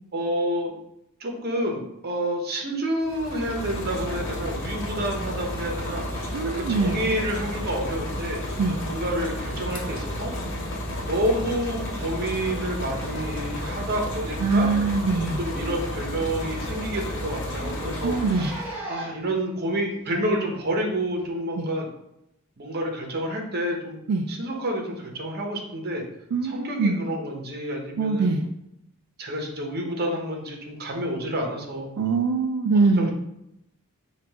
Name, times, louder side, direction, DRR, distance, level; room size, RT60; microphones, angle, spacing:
voice 1, 0.1-0.7 1.2-8.4 8.8-10.3 11.1-14.7 15.4-18.6 18.9-21.9 22.6-24.0 24.3-26.0 26.4-28.4 29.2-31.9 33.0-33.1, right 1 dB, 50° right, 1 dB, 0.8 m, -29 dB
sound 1, 3.0-18.8, equal, 60° left, 0.9 m, -32 dB
voice 2, 6.3-7.0 8.6-8.8 14.4-15.4 18.0-18.5 21.6-21.7 24.1-24.2 26.3-27.0 28.0-28.4 32.0-33.1, right 4 dB, 85° right, 4 dB, 0.4 m, -23 dB
Zipper (clothing), 17.4-19.3 20.1-20.2 21.2-21.3, right 1 dB, 10° right, 0.9 m, -38 dB
5.1 x 2.4 x 3.5 m, 0.83 s
head